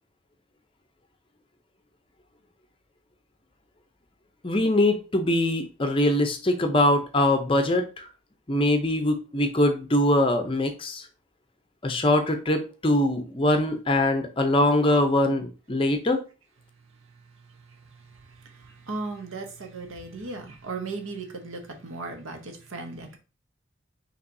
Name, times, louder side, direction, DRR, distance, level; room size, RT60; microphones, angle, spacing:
voice 1, 4.4-8.0 8.5-11.0 11.8-16.2, left 1 dB, 25° left, 0.5 m, -23 dB
voice 2, 17.1-23.2, right 3 dB, 75° right, 1.0 m, -37 dB
5.6 x 3.0 x 2.6 m
head